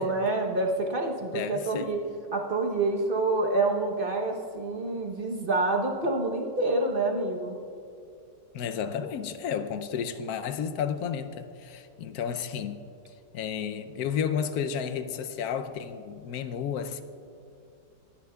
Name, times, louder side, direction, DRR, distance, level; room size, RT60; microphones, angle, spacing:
voice 1, 0.0-2.0 2.3-7.6, right 2 dB, 40° right, 0.9 m, -27 dB
voice 2, 1.3-1.9 8.5-12.8 13.1-17.0, left 7 dB, 70° left, 1.0 m, -32 dB
21.5 x 10.0 x 2.3 m
omnidirectional pair, 1.9 m